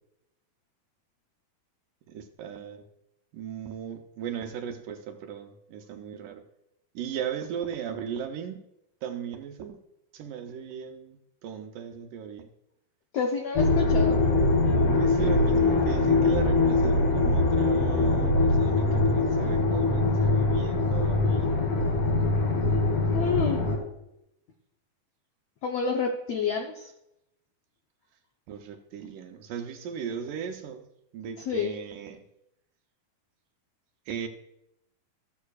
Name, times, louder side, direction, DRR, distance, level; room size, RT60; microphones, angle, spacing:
voice 1, 2.1-2.8 3.3-6.4 7.0-8.6 9.0-9.8 10.1-11.2 11.4-12.5 15.0-21.6 28.5-30.9 31.1-32.2 34.1-34.3, right 8 dB, 75° right, 2.2 m, -37 dB
voice 2, 13.1-14.2 23.1-23.6 25.6-26.9 31.5-31.7, left 5 dB, 75° left, 1.5 m, -28 dB
sound 1, 13.5-23.8, left 2 dB, 45° left, 3.3 m, -23 dB
14.0 x 13.0 x 2.4 m
omnidirectional pair, 4.1 m